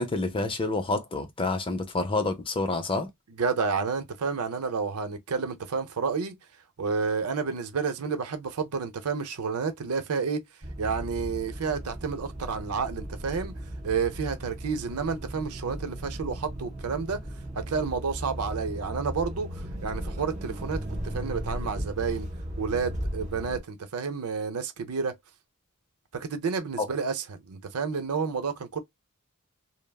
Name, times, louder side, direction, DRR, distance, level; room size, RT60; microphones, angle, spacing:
voice 1, 0.0-3.1 26.8-26.9, left 2 dB, 25° left, 0.6 m, -28 dB
voice 2, 3.4-6.4 6.8-10.4 10.8-13.5 13.8-17.2 17.6-22.3 22.6-25.1 26.1-28.8, right 5 dB, 85° right, 0.6 m, -30 dB
sound 1, 10.6-23.6, equal, 35° right, 1.4 m, -36 dB
3.4 x 2.0 x 2.2 m
head